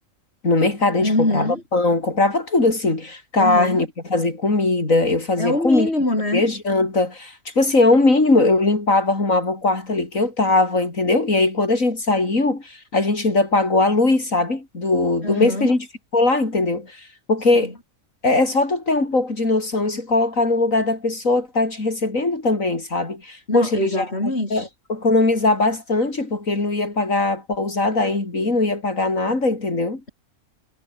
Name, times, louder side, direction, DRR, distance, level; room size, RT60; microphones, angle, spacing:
voice 1, 0.4-5.9 6.3-15.9 16.1-17.7 18.2-24.1 24.5-30.0, left 2 dB, 80° left, 4.9 m, -20 dB
voice 2, 1.0-1.6 3.4-3.8 5.4-6.4 15.2-15.7 17.6-17.7 23.5-24.7, left 1 dB, 50° left, 6.9 m, -23 dB
omnidirectional pair, 1.4 m